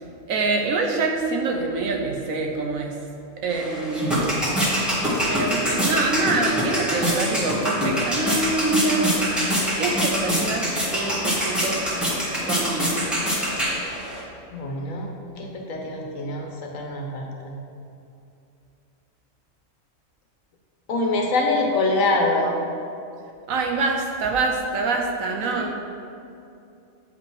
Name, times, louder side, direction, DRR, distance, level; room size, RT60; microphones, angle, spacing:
voice 1, 0.3-2.9 3.4-4.4 5.3-9.2 9.8-11.9 12.4-13.0 23.5-25.7, right 3 dB, 85° right, 2 dB, 1.3 m, -25 dB
sound 1, 3.5-14.2, equal, ahead, 1.8 m, -24 dB
voice 2, 14.5-15.1 15.4-17.5 20.9-22.6 25.5-25.8, left 2 dB, 75° left, 1 dB, 1.4 m, -25 dB
8.3 x 5.4 x 4.8 m, 2.7 s
omnidirectional pair, 1.4 m